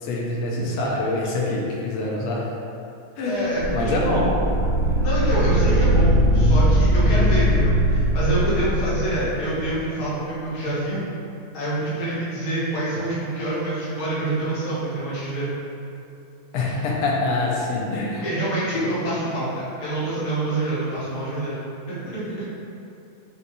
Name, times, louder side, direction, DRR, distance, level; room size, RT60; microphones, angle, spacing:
voice 1, 0.0-2.5 3.2-4.3 16.5-18.2 18.7-18.9, left 2 dB, 90° left, -3 dB, 1.5 m, -25 dB
voice 2, 3.2-4.3 5.0-11.1 11.5-15.5 18.1-21.6 21.9-22.4, right 2 dB, 50° left, -9 dB, 1.3 m, -26 dB
sound 1, 3.6-9.8, equal, 80° right, 1.4 m, -20 dB
5.4 x 2.6 x 2.6 m, 2.8 s
omnidirectional pair, 2.3 m